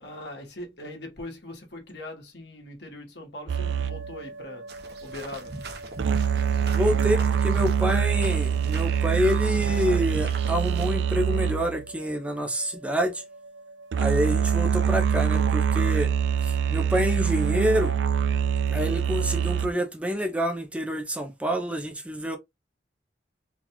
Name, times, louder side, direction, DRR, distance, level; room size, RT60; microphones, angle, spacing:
voice 1, 0.0-4.6 5.0-5.5, left 1 dB, 75° left, 1.3 m, -41 dB
sound 1, 3.5-11.9 13.9-19.7, right 7 dB, 90° right, 0.3 m, -25 dB
sound 2, 4.7-10.9, right 2 dB, 65° right, 0.7 m, -41 dB
voice 2, 6.7-13.2 14.0-16.1 16.4-17.9 18.7-22.4, equal, 5° right, 0.5 m, -27 dB
3.9 x 2.3 x 2.9 m
head